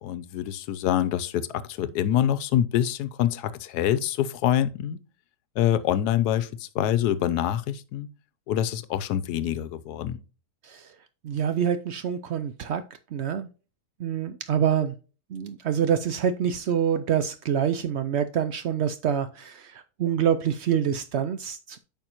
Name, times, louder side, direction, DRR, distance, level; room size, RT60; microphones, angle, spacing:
voice 1, 0.0-5.0 5.6-8.1 8.5-10.2, left 11 dB, 75° left, 1.1 m, -25 dB
voice 2, 11.2-12.8 13.1-13.5 14.0-14.9 15.3-21.8, right 8 dB, 85° right, 0.6 m, -26 dB
8.9 x 5.5 x 2.9 m
omnidirectional pair, 1.7 m